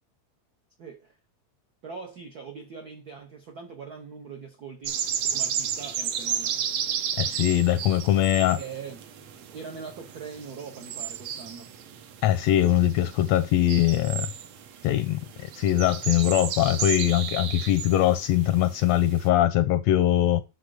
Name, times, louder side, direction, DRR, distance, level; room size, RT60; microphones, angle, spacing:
voice 1, 0.8-1.1 1.8-5.0 5.3-6.6 8.6-9.0 9.5-11.7, right 5 dB, 85° right, 0.8 m, -41 dB
sound 1, 4.8-19.3, right 8 dB, 70° right, 1.9 m, -33 dB
voice 2, 7.2-8.6 12.2-14.3 14.8-15.2 15.6-20.4, left 12 dB, 80° left, 1.5 m, -22 dB
6.5 x 6.2 x 4.9 m
omnidirectional pair, 3.3 m